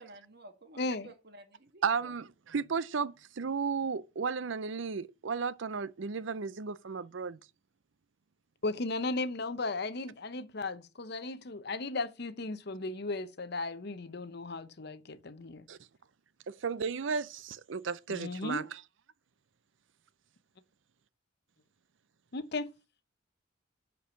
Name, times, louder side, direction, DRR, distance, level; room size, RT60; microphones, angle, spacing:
voice 1, 0.0-2.1, right 2 dB, 55° right, 1.9 m, -53 dB
voice 2, 0.8-1.1 8.6-15.7 18.1-18.7 22.3-22.7, left 3 dB, 55° left, 0.8 m, -36 dB
voice 3, 1.8-7.4 15.7-15.8 16.5-18.8, right 5 dB, 70° right, 0.5 m, -34 dB
10.0 x 4.7 x 7.0 m
head